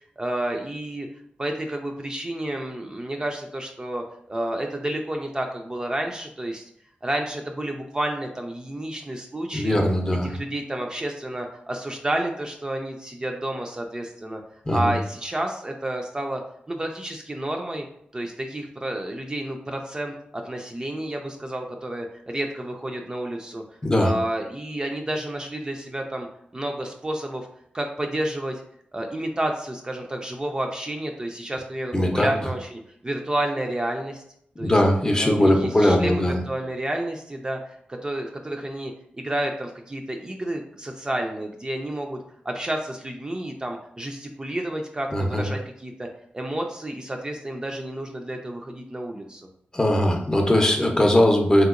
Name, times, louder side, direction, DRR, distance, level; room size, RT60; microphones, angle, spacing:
voice 1, 0.2-1.1 1.4-6.7 7.0-9.8 10.1-14.4 14.7-16.4 16.7-17.8 18.1-23.6 24.0-26.3 26.5-27.5 27.7-28.6 28.9-34.2 34.6-34.7 35.2-37.6 37.9-38.9 39.2-42.2 42.4-46.1 46.3-49.5, right 1 dB, 25° right, 2 dB, 0.4 m, -30 dB
voice 2, 9.5-10.3 14.7-14.9 23.8-24.1 31.9-32.3 34.6-36.4 45.1-45.5 49.7-51.7, left 1 dB, 20° left, 2 dB, 0.6 m, -20 dB
3.4 x 2.8 x 2.4 m, 0.69 s
wide cardioid pair, 85°, 3 cm